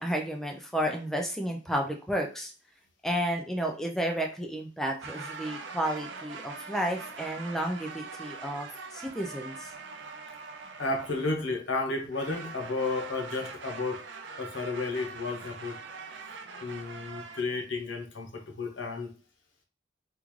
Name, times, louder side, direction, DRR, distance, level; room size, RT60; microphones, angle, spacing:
voice 1, 0.0-2.5 3.0-9.7, equal, ahead, 2 dB, 0.3 m, -32 dB
sound 1, 5.0-11.5 12.1-17.4, right 4 dB, 75° right, 0.4 m, -43 dB
voice 2, 10.8-14.0 14.4-15.8 16.6-19.1, left 3 dB, 85° left, 4 dB, 0.8 m, -32 dB
3.6 x 2.4 x 3.1 m, 0.36 s
head